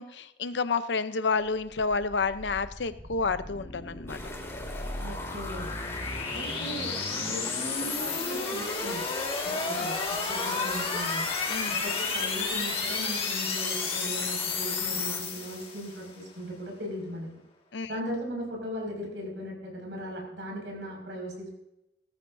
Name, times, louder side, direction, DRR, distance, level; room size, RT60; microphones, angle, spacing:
voice 1, 0.0-4.2 9.8-9.9 11.5-11.8 17.7-17.9, left 4 dB, 80° left, 12 dB, 0.7 m, -30 dB
sound 1, 1.5-16.1, left 4 dB, 35° left, 1.9 m, -32 dB
sound 2, 4.1-15.2, left 2 dB, 15° left, 2.5 m, -43 dB
voice 2, 5.0-5.7 6.3-6.9 7.3-9.1 9.4-11.3 11.8-17.3 17.9-21.6, equal, 90° right, 0 dB, 5.8 m, -38 dB
18.5 x 14.0 x 2.7 m, 0.89 s
head